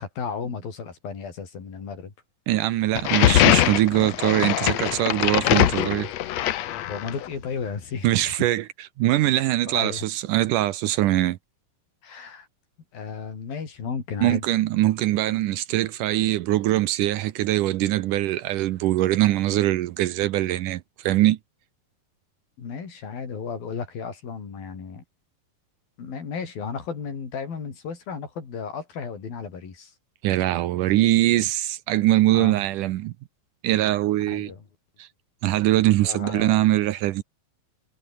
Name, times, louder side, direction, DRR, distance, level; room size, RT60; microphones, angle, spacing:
voice 1, 0.0-2.1 6.9-8.4 9.6-10.1 12.0-12.5 12.9-14.4 22.6-25.0 26.0-29.9 32.3-32.6 34.3-34.6 36.0-36.8, left 6 dB, 85° left, 6.5 m, -34 dB
voice 2, 2.5-6.1 8.0-11.4 14.2-21.4 30.2-33.1 33.6-34.5 35.0-35.1 35.4-37.2, right 15 dB, 75° right, 2.2 m, -22 dB
sound 1, 2.9-7.3, left 13 dB, 65° left, 1.8 m, -22 dB
omnidirectional pair, 4.1 m